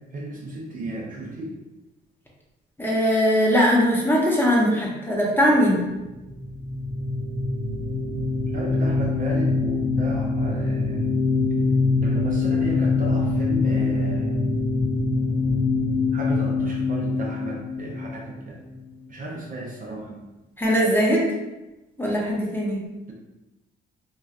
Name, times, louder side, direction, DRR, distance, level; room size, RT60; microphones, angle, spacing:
voice 1, 0.1-1.5 8.5-11.2 12.0-14.4 16.1-18.6 19.1-20.2, right 1 dB, 45° right, -2 dB, 0.6 m, -34 dB
voice 2, 2.8-5.8 20.6-21.3 22.0-22.8, equal, 10° left, -4 dB, 0.7 m, -20 dB
sound 1, 6.2-18.7, left 3 dB, 85° right, 0.9 m, -24 dB
3.0 x 2.4 x 2.4 m, 1.0 s
cardioid pair, 90°, 20 cm